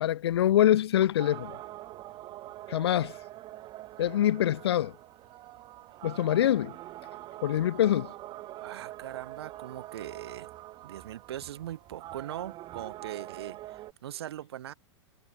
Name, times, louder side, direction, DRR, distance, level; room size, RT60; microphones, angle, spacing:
voice 1, 0.0-1.6 2.7-3.1 4.0-4.9 6.0-6.7 7.4-8.1, left 12 dB, 55° left, 0.7 m, -24 dB
sound 1, 1.2-13.9, right 15 dB, 30° right, 1.9 m, -44 dB
voice 2, 8.6-10.5 10.8-14.7, right 12 dB, 55° right, 1.2 m, -40 dB
figure-of-eight pair, 100°, 15 cm